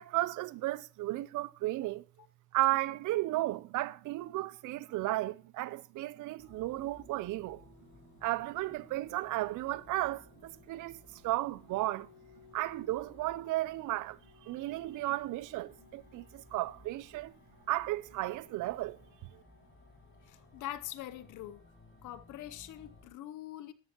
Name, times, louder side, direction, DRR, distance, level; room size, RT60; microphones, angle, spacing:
voice 1, 0.0-2.0 2.5-7.6 8.2-12.1 12.5-17.3 17.7-19.0 19.3-19.4, right 17 dB, 85° right, 0.5 m, -34 dB
sound 1, 6.4-23.1, left 2 dB, 40° left, 6.7 m, -59 dB
voice 2, 20.2-21.7 22.0-23.7, left 13 dB, 85° left, 0.8 m, -43 dB
13.0 x 11.5 x 2.9 m
cardioid pair, 90°, 30 cm